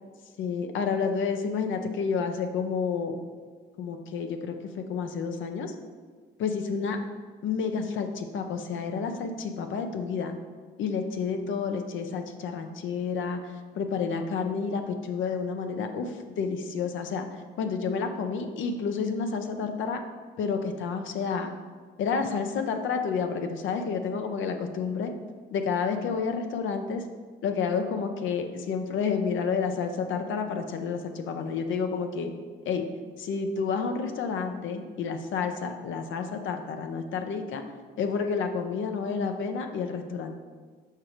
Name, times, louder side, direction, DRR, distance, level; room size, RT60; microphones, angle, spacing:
voice 1, 0.4-3.1 3.8-5.7 6.4-7.0 7.4-10.3 10.8-20.0 20.4-21.5 22.0-25.1 25.5-27.0 27.4-32.3 32.6-32.8 33.2-37.6 38.0-40.4, left 5 dB, 75° left, 6 dB, 0.7 m, -30 dB
5.9 x 4.7 x 5.0 m, 1.5 s
cardioid pair, 90°, 20 cm